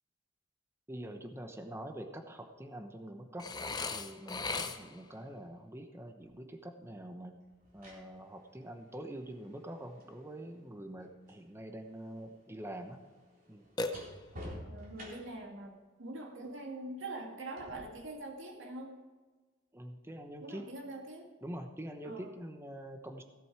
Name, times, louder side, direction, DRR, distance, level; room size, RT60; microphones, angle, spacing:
voice 1, 0.9-3.5 3.8-7.4 7.7-13.0 13.5-13.7 19.7-20.7 21.4-23.2, right 1 dB, 15° right, 6 dB, 1.0 m, -45 dB
Burping eructation, 3.4-5.1 13.8-14.6, left 3 dB, 20° left, 0.7 m, -38 dB
sound 1, 6.2-6.4 7.5-11.5 11.8-15.5 17.6-17.8, equal, 45° right, 3.7 m, -51 dB
voice 2, 14.7-18.9 20.4-21.3 22.1-22.3, right 2 dB, 85° right, 2 dB, 1.8 m, -44 dB
16.5 x 7.9 x 4.9 m, 1.3 s
head